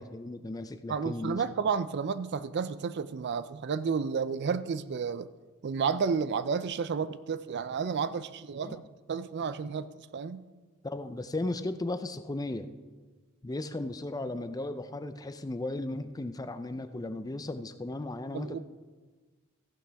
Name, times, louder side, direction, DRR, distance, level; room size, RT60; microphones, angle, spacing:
voice 1, 0.0-1.4 8.6-8.8 10.8-12.7 13.4-18.6, left 2 dB, 15° left, 0.4 m, -36 dB
voice 2, 0.9-5.3 5.6-8.8 9.1-9.9 10.1-10.4 18.3-18.6, right 6 dB, 50° right, 0.4 m, -31 dB
15.0 x 11.0 x 3.5 m
head